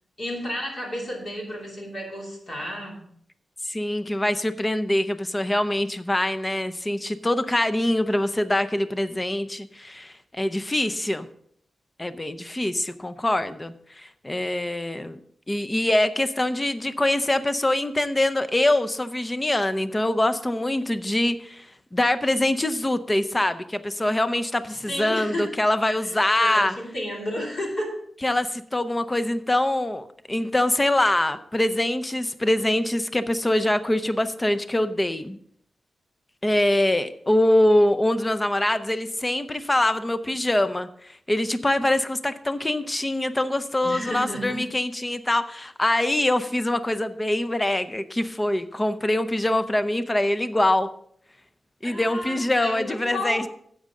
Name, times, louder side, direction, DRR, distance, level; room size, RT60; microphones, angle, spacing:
voice 1, 0.2-3.0 24.7-25.5 26.0-26.1 26.4-28.0 43.8-44.6 51.8-53.5, left 1 dB, 45° left, -1 dB, 2.9 m, -32 dB
voice 2, 3.6-11.3 12.0-15.2 15.5-26.7 28.2-35.4 36.4-50.9 51.8-53.5, left 1 dB, 15° left, 11 dB, 0.6 m, -24 dB
13.0 x 8.3 x 3.7 m, 0.64 s
wide cardioid pair, 160°, 0 cm